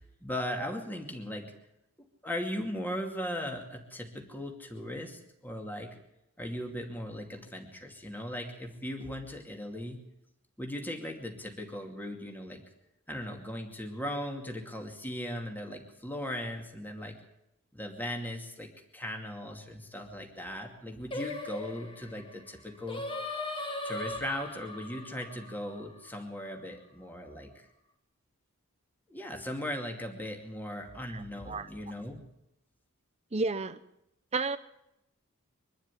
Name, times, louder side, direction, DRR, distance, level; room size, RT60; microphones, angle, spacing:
voice 1, 0.0-1.5 2.2-5.9 6.4-10.0 10.6-12.6 13.1-17.2 17.7-23.0 23.8-27.7 29.1-32.2, left 1 dB, 10° left, 2 dB, 2.4 m, -38 dB
Singing, 21.1-26.4, left 2 dB, 25° left, 2.2 m, -39 dB
voice 2, 31.1-31.7 33.3-33.8 34.3-34.6, right 3 dB, 30° right, 11 dB, 0.7 m, -32 dB
23.5 x 12.0 x 9.8 m, 0.84 s
head